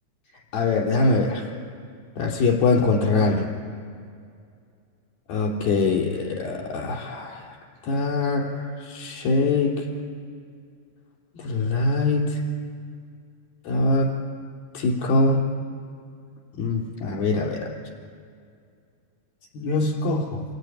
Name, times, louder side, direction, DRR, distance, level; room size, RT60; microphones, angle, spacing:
voice 1, 0.5-1.5 2.2-3.5 5.3-7.6 7.8-9.8 11.4-12.4 13.7-14.1 14.7-15.4 16.6-17.7 19.5-20.4, left 3 dB, 55° left, -1 dB, 5.9 m, -23 dB
28.0 x 20.5 x 10.0 m, 2.2 s
omnidirectional pair, 5.0 m